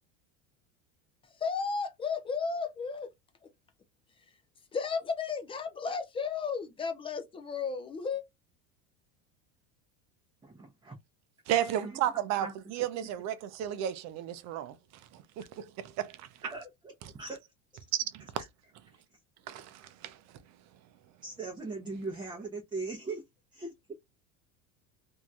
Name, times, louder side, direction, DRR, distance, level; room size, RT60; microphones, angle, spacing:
voice 1, 1.3-3.1 4.7-8.2, left 5 dB, 15° left, 0.3 m, -33 dB
voice 2, 10.4-10.9 11.6-12.0 12.4-12.5 16.4-17.4 21.2-23.2 23.5-23.9, right 3 dB, 10° right, 0.8 m, -40 dB
voice 3, 11.5-14.8 15.1-16.3 17.9-18.5 19.5-20.2, right 11 dB, 45° right, 0.6 m, -33 dB
2.9 x 2.7 x 2.3 m
supercardioid pair, 130°, 37 cm